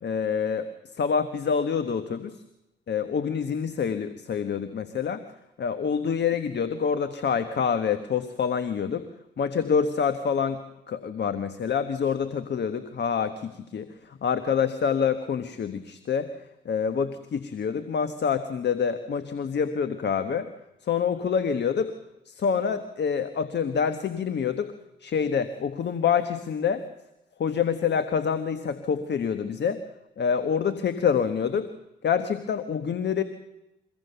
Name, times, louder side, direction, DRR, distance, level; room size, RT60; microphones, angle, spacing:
voice 1, 0.0-2.4 2.9-5.2 5.6-9.1 9.4-20.5 20.8-21.9 22.2-24.7 25.0-26.8 27.4-29.8 30.2-31.7 32.0-33.2, left 7 dB, 55° left, 10 dB, 1.4 m, -27 dB
23.5 x 16.5 x 6.9 m, 0.93 s
hypercardioid pair, 50°, 21 cm